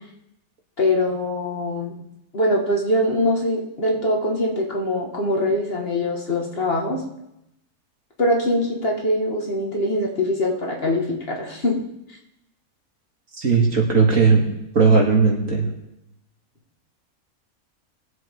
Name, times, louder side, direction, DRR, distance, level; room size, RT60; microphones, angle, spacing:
voice 1, 0.8-1.9 2.3-7.0 8.2-11.8, left 1 dB, 40° left, -1 dB, 2.1 m, -23 dB
voice 2, 13.4-14.4 14.7-15.7, right 4 dB, 65° right, -1 dB, 2.6 m, -17 dB
21.0 x 7.8 x 3.7 m, 0.85 s
omnidirectional pair, 1.5 m